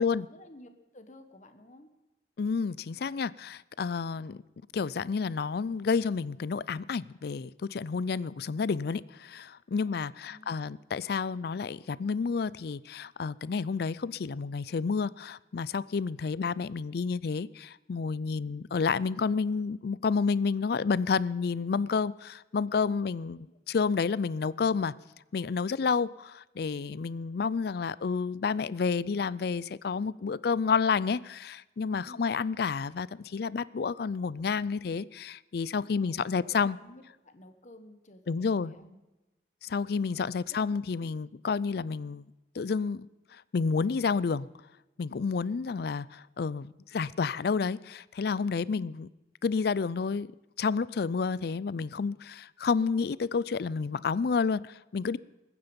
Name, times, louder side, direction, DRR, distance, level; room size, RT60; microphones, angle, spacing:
voice 1, 0.0-1.9 9.9-10.6 18.3-18.5 23.0-23.1 23.4-23.6 32.0-32.3 35.9-39.0 40.1-40.8 48.7-48.9, left 1 dB, 45° left, 1.4 m, -53 dB
voice 2, 2.4-4.4 4.7-24.9 25.3-36.8 38.3-38.7 39.6-42.2 42.5-44.5 45.0-49.1 49.4-50.3 50.6-55.2, left 5 dB, 60° left, 0.4 m, -30 dB
22.0 x 9.6 x 5.3 m
head